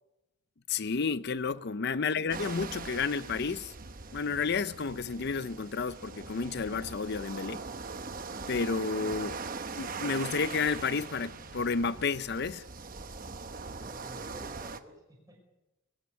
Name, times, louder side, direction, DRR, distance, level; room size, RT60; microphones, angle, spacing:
voice 1, 0.7-3.7 4.1-7.6 8.4-9.4 9.8-12.6, left 5 dB, 55° left, 0.6 m, -31 dB
voice 2, 1.5-2.0 9.0-9.4 13.8-15.4, equal, 20° right, 5.4 m, -51 dB
sound 1, 2.3-14.8, right 4 dB, 45° right, 1.0 m, -41 dB
22.0 x 15.0 x 8.2 m
head